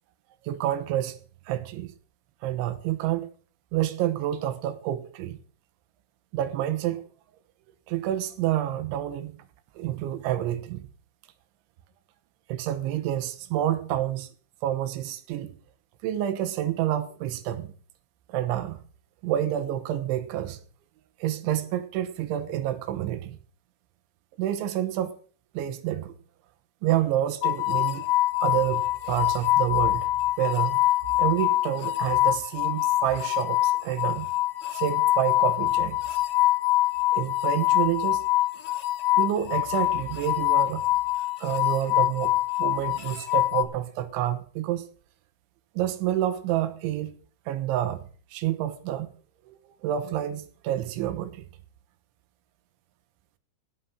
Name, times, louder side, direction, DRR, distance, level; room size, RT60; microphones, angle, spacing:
voice 1, 0.5-1.2 1.5-1.9 2.4-3.3 3.7-5.4 6.3-7.0 7.9-9.3 9.8-10.9 12.5-14.3 14.6-15.6 16.0-17.7 18.3-18.8 19.2-20.6 21.2-23.4 24.4-25.2 25.6-26.1 26.8-28.1 28.4-30.1 30.4-30.8 31.2-34.3 34.7-36.0 37.1-38.3 39.2-40.9 41.4-44.9 45.8-47.1 47.5-48.1 48.3-49.1 49.5-51.5, right 12 dB, 90° right, 3.5 m, -28 dB
sound 1, 27.4-43.7, left 16 dB, 90° left, 3.7 m, -24 dB
17.0 x 7.3 x 5.8 m
omnidirectional pair, 5.3 m